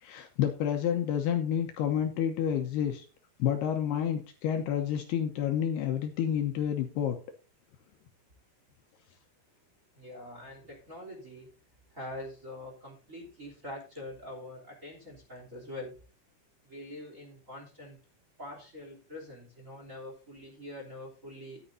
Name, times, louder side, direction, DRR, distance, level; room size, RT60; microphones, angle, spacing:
voice 1, 0.0-3.0 3.4-7.2, left 9 dB, 75° left, 4 dB, 2.6 m, -29 dB
voice 2, 9.9-11.5 11.9-15.9 16.6-18.0 18.4-21.6, left 1 dB, 20° right, -1 dB, 3.0 m, -44 dB
14.0 x 10.0 x 2.7 m, 0.35 s
omnidirectional pair, 5.3 m